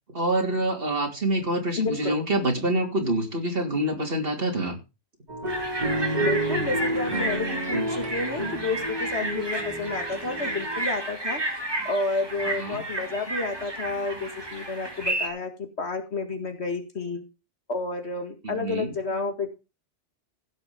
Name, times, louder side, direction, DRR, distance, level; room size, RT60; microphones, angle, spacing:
voice 1, 0.1-4.8 12.6-12.8 18.4-18.9, right 1 dB, 50° right, 2 dB, 3.3 m, -26 dB
voice 2, 1.8-2.2 6.2-11.4 11.8-17.2 17.7-19.5, left 3 dB, 65° left, 6 dB, 2.2 m, -30 dB
sound 1, 5.3-10.9, right 1 dB, 35° right, 2.9 m, -30 dB
sound 2, 5.5-15.3, right 2 dB, 20° right, 2.6 m, -32 dB
16.0 x 6.5 x 5.2 m, 0.29 s
omnidirectional pair, 1.2 m